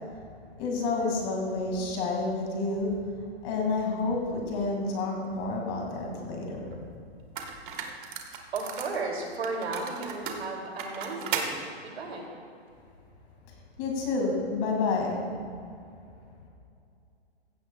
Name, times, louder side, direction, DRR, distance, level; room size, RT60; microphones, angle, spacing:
voice 1, 0.6-2.9 3.4-6.8 13.8-15.2, left 3 dB, 30° left, 0 dB, 2.2 m, -29 dB
sound 1, 6.7-6.8 7.4-9.0 9.4-11.5, right 6 dB, 50° right, 1.4 m, -35 dB
voice 2, 8.5-12.3, right 3 dB, 75° right, 0 dB, 2.7 m, -34 dB
16.0 x 13.5 x 2.3 m, 2.4 s
hypercardioid pair, 155°, 32 cm